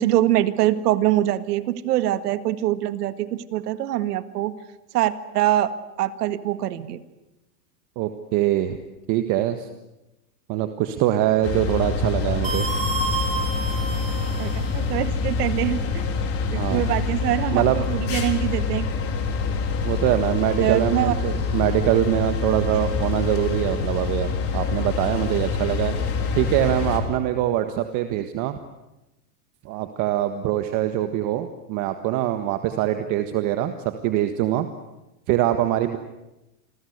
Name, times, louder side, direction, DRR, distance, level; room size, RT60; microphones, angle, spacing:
voice 1, 0.0-4.5 4.9-5.7 6.0-7.0 14.4-16.0 16.5-18.9 20.6-21.1, right 13 dB, 75° right, 12 dB, 1.9 m, -24 dB
voice 2, 7.9-8.8 9.1-9.7 10.5-12.7 16.5-16.9 17.5-17.8 19.8-26.0 26.3-28.6 29.6-34.7 35.3-36.0, right 13 dB, 40° right, 8 dB, 1.6 m, -23 dB
sound 1, 11.4-27.0, left 4 dB, 30° left, 4.2 m, -26 dB
sound 2, 12.4-14.8, right 3 dB, 15° right, 4.0 m, -29 dB
28.0 x 22.0 x 8.1 m, 0.98 s
supercardioid pair, 150°, 48 cm